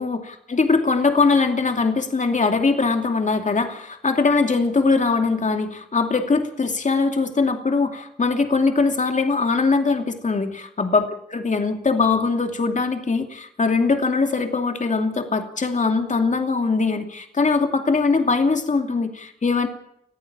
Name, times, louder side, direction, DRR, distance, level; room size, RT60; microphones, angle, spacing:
voice 1, 0.0-19.7, left 4 dB, 45° left, 5 dB, 2.6 m, -21 dB
21.0 x 14.5 x 8.8 m, 0.72 s
wide cardioid pair, 95°, 17 cm